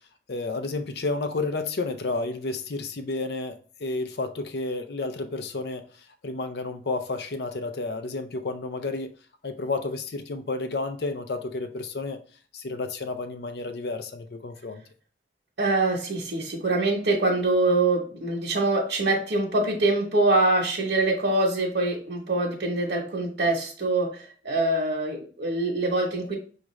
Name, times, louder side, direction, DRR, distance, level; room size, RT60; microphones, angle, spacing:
voice 1, 0.3-9.2 9.4-12.2 12.5-14.8, left 3 dB, 65° left, 0.5 m, -31 dB
voice 2, 15.6-26.4, right 2 dB, 75° right, 1.0 m, -24 dB
6.1 x 2.4 x 3.1 m
head